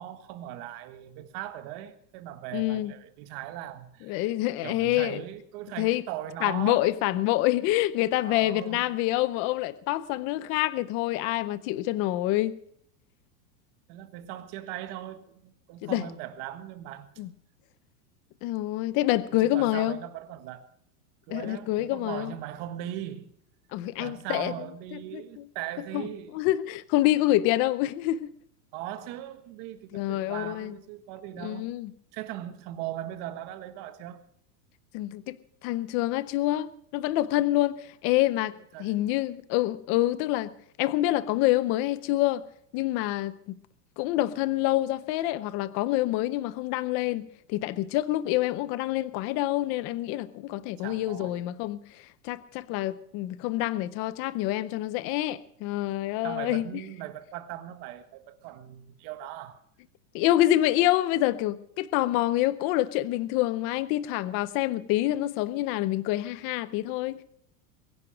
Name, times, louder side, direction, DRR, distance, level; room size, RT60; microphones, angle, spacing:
voice 1, 0.0-4.3 4.6-6.9 8.2-8.9 13.9-17.1 19.3-20.7 21.3-23.3 24.0-26.4 28.7-31.7 32.1-34.2 38.7-38.9 50.8-51.4 56.2-59.6, right 12 dB, 40° right, 1.7 m, -39 dB
voice 2, 2.5-2.9 4.1-5.2 5.8-6.0 6.4-12.5 15.8-16.0 17.2-17.3 18.4-20.0 21.3-22.3 23.7-24.5 24.9-25.2 25.9-26.1 26.3-28.3 29.9-30.7 31.4-31.9 34.9-35.4 35.6-37.8 38.0-38.5 38.8-40.5 40.8-42.4 42.7-43.3 44.0-51.8 52.2-56.6 60.1-67.2, left 15 dB, 30° left, 0.6 m, -27 dB
22.5 x 10.5 x 5.1 m
supercardioid pair, 160°, 47 cm